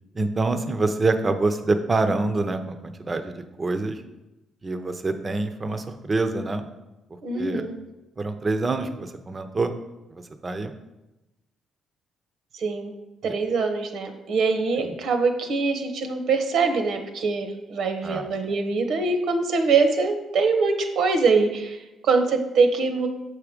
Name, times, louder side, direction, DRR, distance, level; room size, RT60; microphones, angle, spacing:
voice 1, 0.1-4.0 4.6-6.6 7.3-7.6 8.2-9.7 10.1-10.7 13.2-13.3 14.8-14.9 18.0-18.3, right 3 dB, 30° right, 8 dB, 0.7 m, -26 dB
voice 2, 7.2-7.8 12.5-12.9 13.2-23.1, right 4 dB, 70° right, 6 dB, 1.0 m, -23 dB
6.6 x 4.8 x 5.1 m, 0.99 s
cardioid pair, 90°, 0 cm